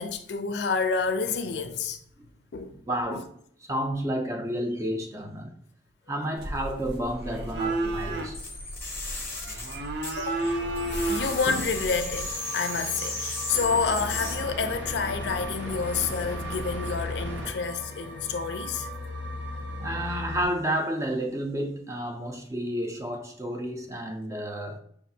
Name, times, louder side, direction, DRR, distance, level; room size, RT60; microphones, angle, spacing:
voice 1, 0.0-2.0 2.5-2.7 3.1-3.2 10.2-18.9, left 5 dB, 65° left, 0.4 m, -29 dB
voice 2, 2.9-3.3 3.7-5.5 6.1-8.4 19.8-24.8, equal, 15° right, 0.4 m, -31 dB
sound 1, 6.4-12.4, right 2 dB, 60° right, 0.6 m, -32 dB
sound 2, 8.3-10.5 10.8-14.3, left 2 dB, 15° left, 0.7 m, -35 dB
sound 3, 10.4-20.4, equal, 85° right, 0.9 m, -36 dB
6.0 x 2.4 x 2.7 m
head